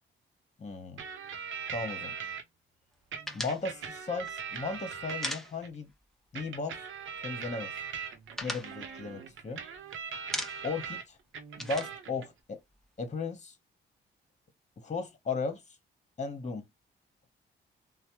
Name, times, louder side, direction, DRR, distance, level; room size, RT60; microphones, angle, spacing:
voice 1, 0.6-1.0 1.7-2.1 3.3-5.9 6.3-6.8 7.2-7.7 8.4-9.6 10.6-11.2 11.6-12.6 13.0-13.5 14.8-15.6 16.2-16.6, left 4 dB, 35° left, 1.0 m, -36 dB
sound 1, 1.0-2.4 3.1-5.7 6.3-11.0 11.3-12.3, right 6 dB, 70° right, 0.6 m, -40 dB
sound 2, 3.3-6.0 6.3-6.5 6.8-7.5 7.8-9.8 10.1-10.9 11.1-13.0, equal, ahead, 0.7 m, -40 dB
3.2 x 2.0 x 3.0 m
cardioid pair, 65°, 21 cm